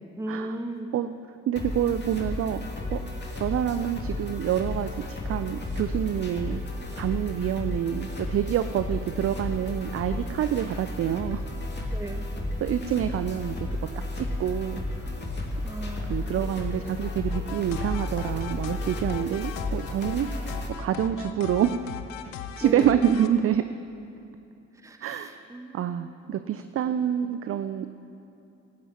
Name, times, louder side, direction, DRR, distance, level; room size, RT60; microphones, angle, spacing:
voice 1, 0.2-0.9 11.9-12.3 15.6-16.3 22.6-23.1 24.7-26.2 27.2-27.4, right 1 dB, 10° right, 5 dB, 1.1 m, -37 dB
voice 2, 1.5-2.6 2.9-3.0 3.4-6.6 6.9-11.4 12.6-13.6 14.2-14.8 16.1-21.7 22.6-23.6 25.0-25.4 25.7-27.9, right 10 dB, 35° right, 11 dB, 0.5 m, -27 dB
sound 1, 1.6-20.7, left 1 dB, 25° left, 2.3 m, -33 dB
sound 2, 17.3-23.3, left 9 dB, 75° left, 0.7 m, -37 dB
17.0 x 16.0 x 3.0 m, 2.7 s
figure-of-eight pair, 40°, 39 cm